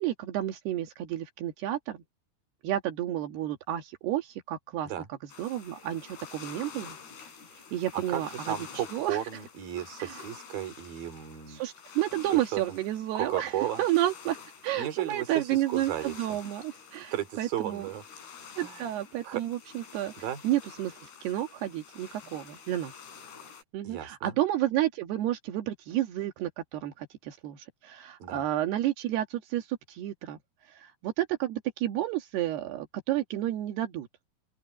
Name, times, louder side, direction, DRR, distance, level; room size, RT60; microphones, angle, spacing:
voice 1, 0.0-2.0 2.6-7.0 7.7-9.2 10.0-10.2 11.5-13.5 13.8-17.9 18.6-20.1 20.4-22.9 23.7-30.4 30.7-34.1, right 13 dB, 85° right, 3.7 m, -31 dB
sound 1, 5.3-23.6, left 7 dB, 80° left, 7.4 m, -49 dB
voice 2, 7.9-11.6 12.5-12.6 13.1-13.8 14.8-16.1 17.1-18.0 18.6-18.9 19.2-19.4 20.2-20.4 23.8-24.3 28.2-28.4, right 11 dB, 65° right, 4.4 m, -34 dB
open air
omnidirectional pair, 4.6 m